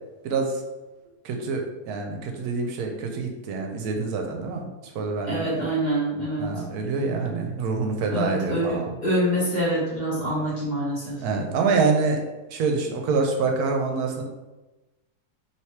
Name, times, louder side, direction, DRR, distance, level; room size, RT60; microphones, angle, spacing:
voice 1, 0.2-0.6 1.2-4.7 4.9-5.6 6.4-8.9 11.2-12.2 12.5-14.2, right 4 dB, 80° right, 3 dB, 1.1 m, -26 dB
voice 2, 5.2-6.5 8.1-11.2, right 1 dB, 30° left, -7 dB, 1.5 m, -26 dB
3.3 x 2.9 x 4.4 m, 1.1 s
omnidirectional pair, 1.7 m